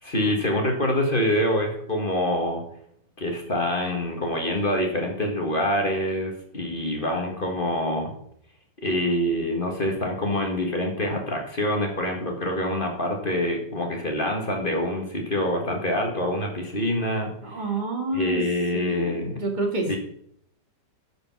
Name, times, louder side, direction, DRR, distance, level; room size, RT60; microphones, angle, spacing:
voice 1, 0.0-2.6 3.2-8.1 8.8-17.6 18.1-19.4 19.9-20.0, left 1 dB, 30° left, 2 dB, 1.7 m, -26 dB
voice 2, 17.4-18.4 18.7-20.0, right 2 dB, 25° right, 1 dB, 2.0 m, -28 dB
10.5 x 5.2 x 5.9 m, 0.67 s
omnidirectional pair, 1.9 m